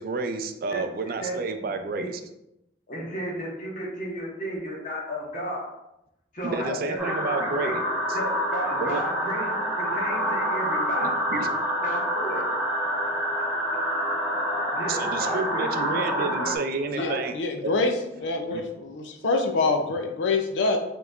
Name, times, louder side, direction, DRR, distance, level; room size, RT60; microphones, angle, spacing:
voice 1, 0.0-2.2 6.4-7.8 8.8-9.0 11.0-11.5 14.9-17.7 18.5-18.6, right 4 dB, 50° right, 7 dB, 0.3 m, -30 dB
voice 2, 0.7-1.3 2.0-2.1 2.9-5.7 6.3-7.7 8.1-11.1 11.8-12.4 14.7-15.7 16.0-16.5 17.0-17.2 18.2-18.6, equal, 45° left, -3 dB, 1.2 m, -34 dB
sound 1, 7.0-16.6, equal, 5° right, 1.3 m, -27 dB
voice 3, 16.9-17.9 18.2-20.8, left 3 dB, 80° left, 5 dB, 0.4 m, -25 dB
5.1 x 3.0 x 2.4 m, 0.87 s
head